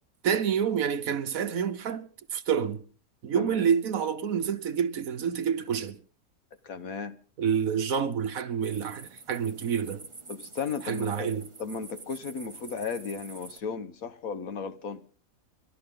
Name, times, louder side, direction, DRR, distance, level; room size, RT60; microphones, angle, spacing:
voice 1, 0.2-2.8 3.2-6.0 7.4-10.1 10.9-11.5, right 7 dB, 70° right, 1.4 m, -28 dB
voice 2, 3.3-3.7 6.6-7.2 10.3-15.0, left 5 dB, 70° left, 1.7 m, -35 dB
sound 1, 8.6-13.6, right 4 dB, 25° right, 0.7 m, -47 dB
30.0 x 12.5 x 3.8 m
omnidirectional pair, 1.5 m